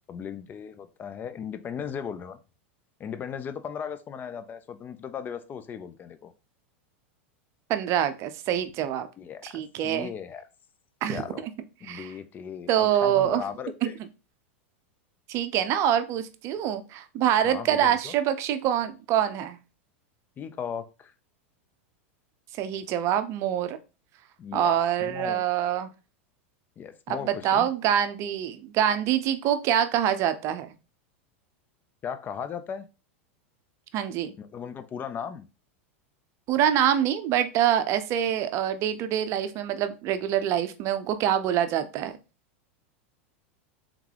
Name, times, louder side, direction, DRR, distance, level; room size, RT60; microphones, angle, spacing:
voice 1, 0.1-2.4 3.0-6.3 9.2-10.4 11.1-11.4 11.8-13.9 17.4-18.1 20.4-21.1 24.4-25.4 26.8-27.7 32.0-32.9 34.4-35.5, left 7 dB, 30° left, 0.4 m, -37 dB
voice 2, 7.7-9.1 9.4-10.1 11.0-11.2 11.9-12.1 12.7-13.4 13.8-13.9 15.3-19.6 22.6-23.8 24.5-25.9 27.1-30.7 33.9-34.3 36.5-42.1, right 10 dB, 45° right, 0.5 m, -25 dB
3.6 x 3.5 x 3.3 m
hypercardioid pair, 110°, 7 cm